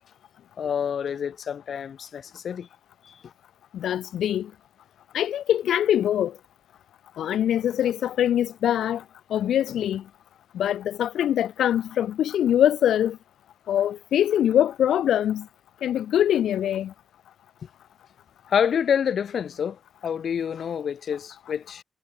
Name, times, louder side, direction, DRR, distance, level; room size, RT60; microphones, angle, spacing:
voice 1, 0.6-2.7 3.0-3.3 18.5-21.8, left 7 dB, 50° left, 0.8 m, -27 dB
voice 2, 3.7-4.5 5.1-6.3 7.2-9.0 9.3-10.0 10.5-13.2 13.7-15.5 15.8-16.9, left 10 dB, 85° left, 0.4 m, -23 dB
wide cardioid pair, 180°, 0 cm